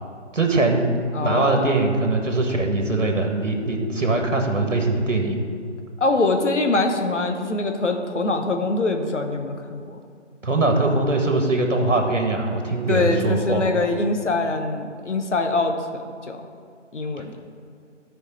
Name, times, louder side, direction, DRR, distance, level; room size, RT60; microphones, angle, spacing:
voice 1, 0.3-0.9 1.2-5.4 10.4-13.6 17.2-17.4, right 2 dB, 80° right, 3 dB, 1.5 m, -22 dB
voice 2, 1.1-1.7 6.0-10.0 12.9-16.4 16.9-17.4, left 3 dB, 70° left, 4 dB, 1.1 m, -23 dB
12.5 x 4.9 x 4.2 m, 2.2 s
figure-of-eight pair, 155°, 37 cm